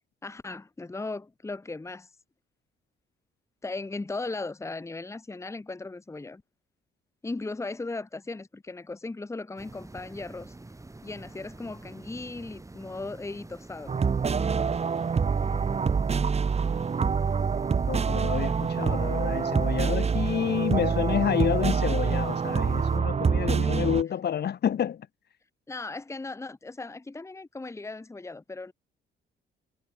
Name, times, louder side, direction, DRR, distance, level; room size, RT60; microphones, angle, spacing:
voice 1, 0.2-2.1 3.6-6.4 7.2-10.5 11.0-13.9 23.5-23.9 25.7-28.7, left 3 dB, 15° left, 1.1 m, -37 dB
sound 1, 9.6-23.0, right 2 dB, 15° right, 3.0 m, -46 dB
sound 2, 13.9-24.0, right 6 dB, 30° right, 1.0 m, -26 dB
voice 2, 17.9-25.1, left 9 dB, 55° left, 1.6 m, -29 dB
cardioid pair, 90°, 20 cm